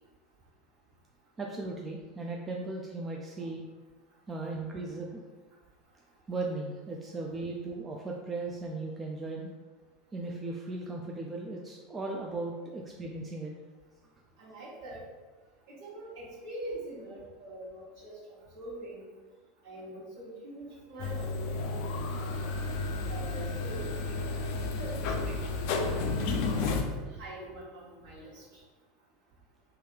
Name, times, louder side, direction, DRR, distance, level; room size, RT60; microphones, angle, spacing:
voice 1, 1.4-3.6 4.3-5.2 6.3-9.5 10.1-13.5, right 2 dB, 20° right, -1 dB, 0.3 m, -37 dB
voice 2, 14.4-15.0 15.8-19.0 19.6-22.6 23.1-25.6 26.0-28.4, right 1 dB, 60° right, -7 dB, 1.3 m, -44 dB
sound 1, 21.0-26.8, left 3 dB, 55° left, 0.3 m, -32 dB
3.1 x 2.3 x 3.2 m, 1.4 s
figure-of-eight pair, 80°, 0 cm